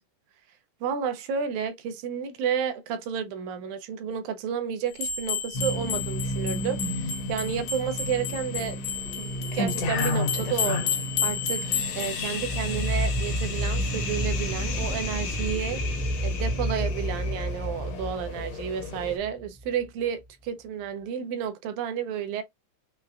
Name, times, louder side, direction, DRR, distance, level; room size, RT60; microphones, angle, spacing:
voice 1, 0.8-8.8 9.2-10.8 11.2-11.7 12.0-15.8 16.2-22.4, right 8 dB, 80° right, 1.9 m, -31 dB
sound 1, 5.0-12.2, left 7 dB, 85° left, 2.4 m, -31 dB
sound 2, 5.5-19.2, left 2 dB, 70° left, 1.8 m, -33 dB
sound 3, 12.4-19.7, equal, 10° right, 0.9 m, -30 dB
5.5 x 2.1 x 2.3 m
omnidirectional pair, 3.6 m